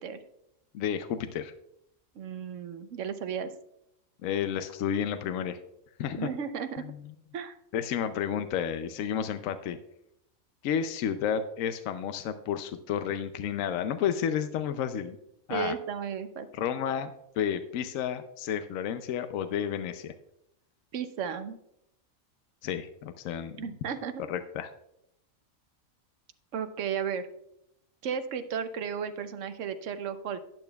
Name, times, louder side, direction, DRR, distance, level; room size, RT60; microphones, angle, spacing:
voice 1, 0.7-1.5 4.2-5.6 6.0-6.3 6.9-7.0 7.7-9.8 10.6-15.2 15.5-15.7 16.5-20.1 22.6-23.6 24.3-24.7, left 8 dB, 75° left, 9 dB, 1.0 m, -31 dB
voice 2, 2.1-3.5 6.2-6.8 7.3-7.6 15.5-16.5 20.9-21.6 23.6-24.1 26.5-27.3 28.0-30.4, right 7 dB, 65° right, 10 dB, 1.0 m, -34 dB
12.0 x 8.7 x 2.3 m, 0.80 s
omnidirectional pair, 1.4 m